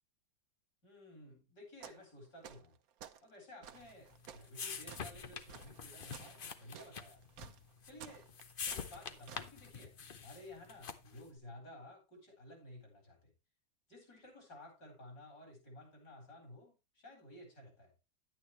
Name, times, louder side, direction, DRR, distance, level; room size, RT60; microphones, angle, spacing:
voice 1, 0.8-2.7 3.2-7.2 7.8-8.2 8.7-13.3 13.9-17.9, left 1 dB, 55° left, 2 dB, 4.7 m, -54 dB
sound 1, 1.8-2.1 2.4-3.2 3.6-9.5, right 9 dB, 60° right, 1.0 m, -54 dB
sound 2, 3.8-11.3, left 6 dB, 70° left, 0.5 m, -46 dB
10.5 x 9.3 x 3.1 m, 0.26 s
omnidirectional pair, 2.1 m